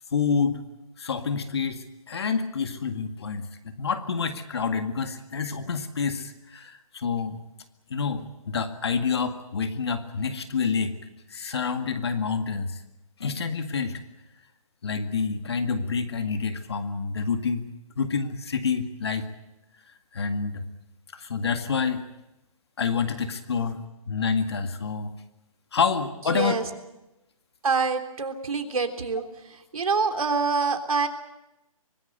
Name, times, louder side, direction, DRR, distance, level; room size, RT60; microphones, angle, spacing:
voice 1, 0.1-0.6 1.0-7.4 7.9-11.0 11.3-12.8 13.2-14.0 14.8-17.7 18.0-19.3 20.1-20.6 21.1-22.0 22.8-25.1 25.7-26.6, left 5 dB, 45° left, 8 dB, 2.0 m, -28 dB
voice 2, 26.3-26.6 27.6-29.2 29.7-31.1, right 4 dB, 75° right, 5 dB, 3.5 m, -25 dB
24.5 x 19.5 x 8.0 m, 0.96 s
hypercardioid pair, 175°, 18 cm